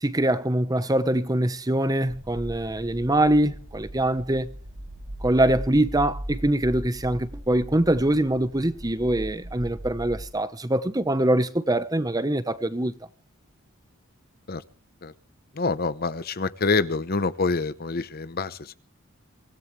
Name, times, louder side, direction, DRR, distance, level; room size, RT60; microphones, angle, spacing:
voice 1, 0.0-4.5 5.2-12.9, right 1 dB, 20° right, 1.0 m, -23 dB
sound 1, 2.1-10.3, right 1 dB, 60° right, 2.7 m, -38 dB
voice 2, 15.6-18.7, left 4 dB, 45° left, 0.9 m, -26 dB
24.5 x 17.5 x 3.3 m
head